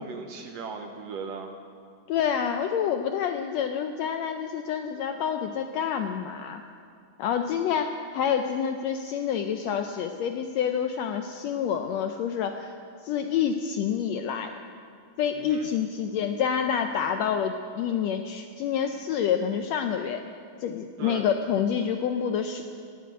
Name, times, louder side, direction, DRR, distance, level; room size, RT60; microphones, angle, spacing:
voice 1, 0.0-1.5 15.3-15.7 21.0-21.2, right 4 dB, 70° right, 4 dB, 1.7 m, -37 dB
voice 2, 2.1-6.6 7.2-12.7 13.0-14.5 15.2-20.2 20.6-22.6, left 8 dB, 80° left, 6 dB, 1.5 m, -28 dB
18.0 x 7.6 x 9.2 m, 2.3 s
omnidirectional pair, 3.6 m